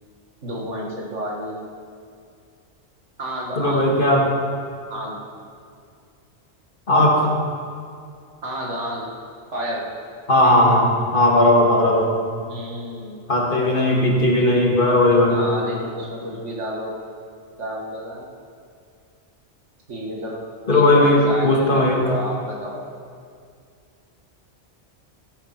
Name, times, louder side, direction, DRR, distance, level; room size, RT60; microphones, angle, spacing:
voice 1, 0.4-1.7 3.2-4.1 4.9-5.2 8.4-9.2 9.5-9.9 12.4-13.2 15.3-17.0 17.5-18.3 19.9-20.4 20.7-22.8, equal, 85° right, -2 dB, 2.3 m, -31 dB
voice 2, 3.6-4.3 6.9-7.3 10.3-12.1 13.3-15.4 20.7-22.0, left 1 dB, 45° left, -2 dB, 2.2 m, -17 dB
13.0 x 9.2 x 5.9 m, 2.3 s
omnidirectional pair, 1.2 m